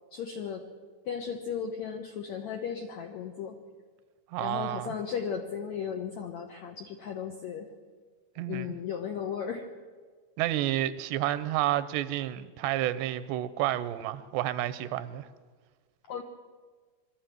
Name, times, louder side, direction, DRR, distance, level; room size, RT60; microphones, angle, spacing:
voice 1, 0.1-0.6 1.0-3.6 4.4-7.7 8.5-9.7 16.1-16.2, left 7 dB, 75° left, 1.6 m, -35 dB
voice 2, 4.3-4.9 8.4-8.8 10.4-15.3, right 13 dB, 85° right, 2.9 m, -30 dB
22.0 x 13.0 x 9.1 m
omnidirectional pair, 4.8 m